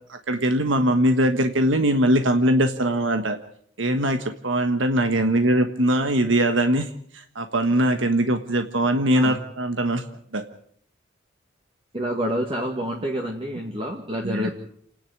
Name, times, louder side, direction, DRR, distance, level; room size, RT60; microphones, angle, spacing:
voice 1, 0.1-3.4 3.8-10.1 10.3-10.4 14.2-14.5, right 1 dB, 85° right, 7 dB, 1.4 m, -21 dB
voice 2, 11.9-14.5, equal, 30° right, 0 dB, 2.0 m, -28 dB
28.5 x 10.5 x 9.4 m, 0.65 s
head